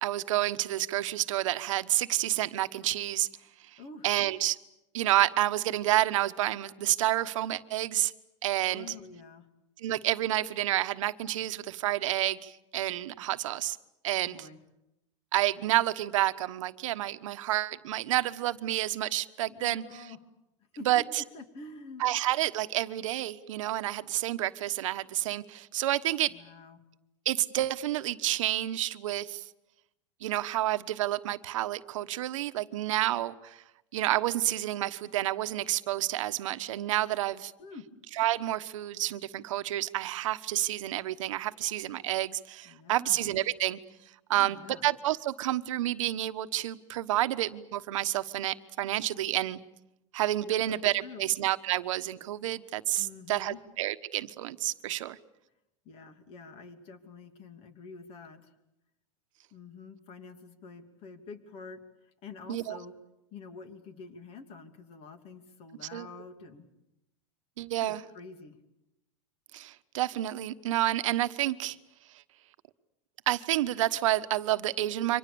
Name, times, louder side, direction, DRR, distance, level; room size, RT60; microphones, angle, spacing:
voice 1, 0.0-3.3 3.7-3.8 4.0-4.6 4.9-8.1 8.4-8.9 9.8-13.8 14.0-14.5 15.3-19.8 20.8-21.2 22.0-26.3 27.2-29.4 30.2-33.6 33.9-37.5 38.2-43.8 44.3-49.6 50.1-55.2 62.5-62.8 65.9-66.1 67.6-68.0 69.5-71.8 73.3-75.2, right 14 dB, 85° right, 12 dB, 1.2 m, -29 dB
voice 2, 8.6-9.5 14.1-14.6 19.5-20.2 20.7-21.0 21.3-22.0 26.3-26.8 37.6-37.9 42.6-43.2 44.3-44.9 50.4-51.3 53.0-53.6 55.8-58.5 59.5-62.9 63.3-66.7 67.8-68.6, left 4 dB, 35° left, 8 dB, 2.9 m, -47 dB
28.5 x 25.0 x 7.0 m, 0.89 s
supercardioid pair, 155°, 16 cm